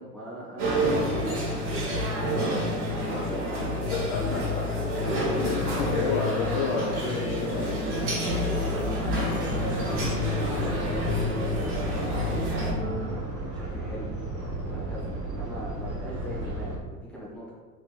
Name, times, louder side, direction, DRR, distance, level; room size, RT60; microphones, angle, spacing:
voice 1, 0.0-4.1 8.3-17.5, equal, ahead, -6 dB, 0.7 m, -41 dB
sound 1, 0.6-12.7, right 1 dB, 50° right, 1.2 m, -30 dB
sound 2, 0.6-13.1, left 4 dB, 85° right, 0.9 m, -32 dB
voice 2, 3.6-4.6 5.3-8.0, left 4 dB, 35° left, -4 dB, 0.4 m, -31 dB
sound 3, 9.3-16.8, right 2 dB, 30° right, 0.8 m, -34 dB
3.4 x 3.0 x 2.3 m, 1.4 s
figure-of-eight pair, 85°, 47 cm